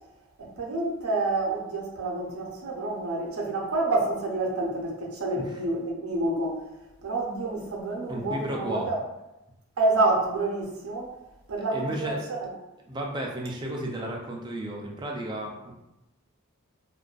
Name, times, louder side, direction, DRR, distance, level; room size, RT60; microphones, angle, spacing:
voice 1, 0.4-6.6 7.0-9.0 9.8-11.1 11.5-12.5, right 2 dB, 85° right, -1 dB, 0.6 m, -28 dB
voice 2, 8.1-8.9 11.7-12.2 12.9-15.7, right 1 dB, 20° right, 0 dB, 0.3 m, -33 dB
2.5 x 2.2 x 2.3 m, 0.94 s
head